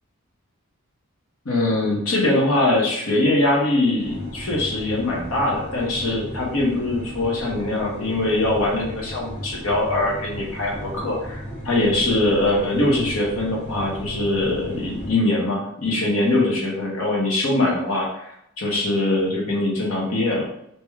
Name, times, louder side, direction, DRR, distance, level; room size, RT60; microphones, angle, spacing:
voice 1, 1.4-11.4 11.6-20.5, left 2 dB, 75° left, -2 dB, 1.1 m, -22 dB
sound 1, 4.0-15.1, equal, 90° left, 1.3 m, -35 dB
3.2 x 2.9 x 3.5 m, 0.75 s
head